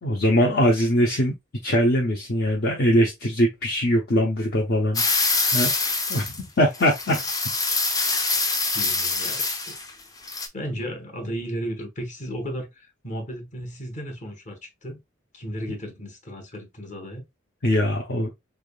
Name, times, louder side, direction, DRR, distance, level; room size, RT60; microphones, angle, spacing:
voice 1, 0.0-1.3 1.6-6.3 6.6-7.2 17.6-18.3, equal, 55° left, 0.7 m, -22 dB
sound 1, 4.9-6.4 6.7-9.9 10.2-10.5, left 3 dB, 20° left, 0.6 m, -25 dB
voice 2, 8.7-9.7 10.5-15.0 15.3-17.2, equal, 40° left, 1.1 m, -34 dB
3.6 x 3.4 x 2.2 m
head